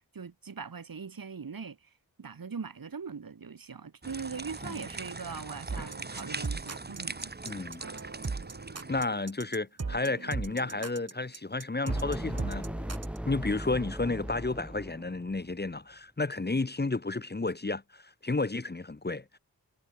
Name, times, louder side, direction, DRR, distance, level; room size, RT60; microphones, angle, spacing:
voice 1, 0.0-1.8 2.2-7.3, right 5 dB, 65° right, 1.9 m, -41 dB
sound 1, 4.0-9.0, right 3 dB, 25° right, 1.2 m, -41 dB
sound 2, 5.7-13.2, right 4 dB, 40° right, 1.8 m, -38 dB
voice 2, 7.4-7.8 8.9-12.7 13.2-19.4, left 3 dB, 25° left, 1.2 m, -32 dB
sound 3, 11.9-15.5, equal, 5° right, 0.7 m, -37 dB
cardioid pair, 55°, 37 cm